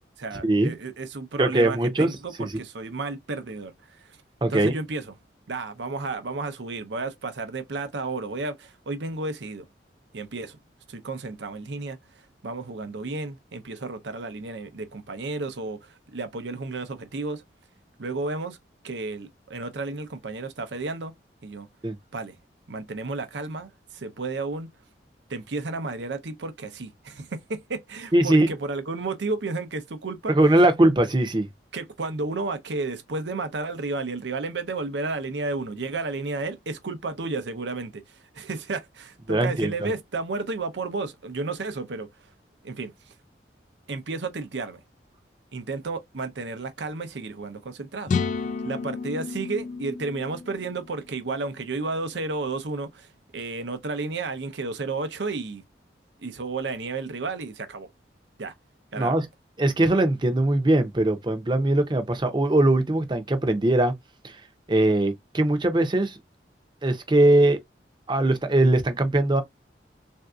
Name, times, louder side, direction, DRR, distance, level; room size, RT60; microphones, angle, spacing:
voice 1, 0.2-4.2 4.5-5.1 5.5-9.6 10.1-10.6 10.9-12.0 12.4-17.4 18.0-18.6 18.8-21.1 21.4-21.7 22.1-22.4 22.7-24.7 25.3-30.3 31.7-42.1 42.6-42.9 43.9-44.8 45.5-48.1 48.6-55.6 56.2-57.9 58.4-58.5 58.9-59.2, right 3 dB, 85° right, 0.7 m, -32 dB
voice 2, 1.4-2.1 2.4-2.6 4.4-4.7 21.8-21.9 28.1-28.5 30.3-31.5 39.3-39.9 59.0-59.3 59.6-63.9 64.2-64.4 64.7-66.2 66.8-67.6 68.1-69.4, right 1 dB, 25° right, 0.6 m, -21 dB
sound 1, 48.1-51.8, left 5 dB, 45° left, 0.3 m, -31 dB
3.4 x 2.6 x 2.3 m
head